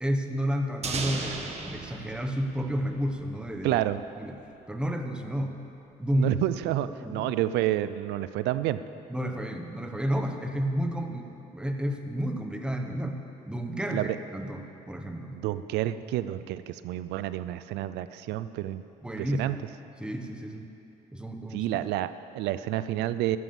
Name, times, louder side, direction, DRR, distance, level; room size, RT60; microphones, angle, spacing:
voice 1, 0.0-3.8 4.1-4.4 4.7-5.6 6.0-6.3 6.7-7.3 9.1-15.4 19.0-19.6 20.0-20.7 21.1-21.7, equal, 5° right, 4 dB, 1.1 m, -31 dB
sound 1, 0.8-3.6, right 4 dB, 40° right, 1.4 m, -36 dB
voice 2, 3.6-4.0 6.1-8.8 13.9-14.2 15.3-18.8 19.2-19.6 21.5-23.4, right 14 dB, 85° right, 13 dB, 0.5 m, -29 dB
13.5 x 9.5 x 7.2 m, 2.8 s
cardioid pair, 110°, 17 cm